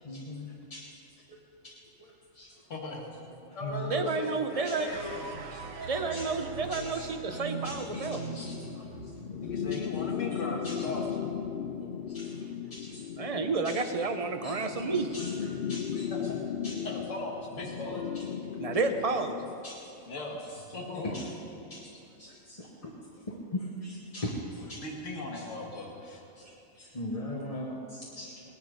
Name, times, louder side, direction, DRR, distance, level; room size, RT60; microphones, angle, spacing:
voice 1, 0.1-0.8 1.3-1.4 2.0-2.5 3.6-4.0 4.6-4.8 5.5-6.3 6.7-7.0 7.3-9.0 10.6-10.7 11.8-12.3 12.7-13.0 13.6-13.8 14.4-14.6 14.9-16.1 16.6-16.8 19.6-19.9 21.0-21.2 21.7-22.9 23.5-24.8 25.3-25.4 25.7-25.8 26.4-28.3, left 1 dB, 30° left, -3 dB, 1.2 m, -40 dB
voice 2, 2.7-3.0 3.5-5.4 9.4-11.2 16.1-16.2 16.8-18.1 20.1-21.2 24.7-26.2, left 2 dB, 60° left, 0 dB, 2.1 m, -38 dB
voice 3, 3.9-4.9 5.9-8.2 13.2-15.1 18.6-19.4, right 4 dB, 35° right, 7 dB, 0.7 m, -30 dB
sound 1, 4.9-11.2, right 6 dB, 75° right, 1.2 m, -43 dB
sound 2, 7.2-19.7, left 8 dB, 80° left, 0.4 m, -37 dB
19.0 x 11.0 x 5.1 m, 2.7 s
omnidirectional pair, 1.4 m